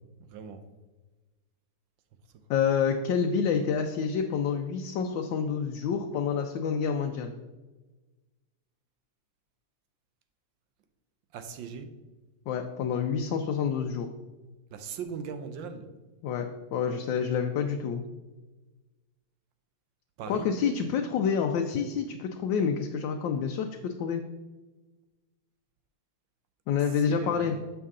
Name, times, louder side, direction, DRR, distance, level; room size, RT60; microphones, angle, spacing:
voice 1, 0.2-0.7 11.3-11.9 14.7-15.9 20.2-20.5 27.1-27.6, right 6 dB, 85° right, 9 dB, 1.4 m, -39 dB
voice 2, 2.5-7.4 12.5-14.1 16.2-18.0 20.3-24.2 26.7-27.5, left 6 dB, 85° left, 4 dB, 1.3 m, -28 dB
7.0 x 5.5 x 3.6 m, 1.2 s
omnidirectional pair, 2.0 m